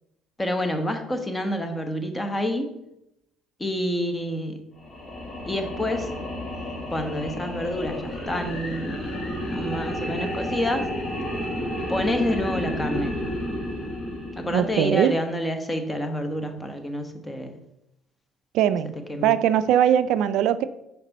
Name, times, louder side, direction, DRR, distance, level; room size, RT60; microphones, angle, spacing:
voice 1, 0.4-2.7 3.6-4.6 5.5-6.1 6.9-9.0 9.5-10.9 11.9-13.2 14.3-17.6 19.1-19.3, left 1 dB, 20° left, 6 dB, 1.2 m, -28 dB
sound 1, 4.8-15.1, equal, 40° left, 1.8 m, -31 dB
voice 2, 14.5-15.1 18.5-18.9 19.2-20.6, right 10 dB, 70° right, 13 dB, 0.3 m, -20 dB
5.9 x 5.3 x 4.1 m, 0.84 s
hypercardioid pair, 65°, 0 cm